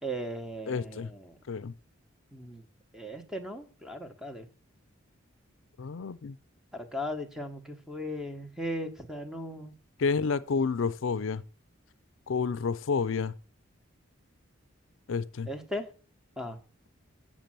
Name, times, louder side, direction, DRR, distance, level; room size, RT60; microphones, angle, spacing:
voice 1, 0.0-1.3 2.3-2.6 2.9-4.5 6.7-9.7 15.5-15.9 16.4-16.6, equal, 5° right, 1.0 m, -37 dB
voice 2, 0.7-1.1 1.5-1.7 5.8-6.3 10.0-11.4 12.3-13.3 15.1-15.5, left 5 dB, 70° left, 0.4 m, -29 dB
7.4 x 6.7 x 7.5 m
head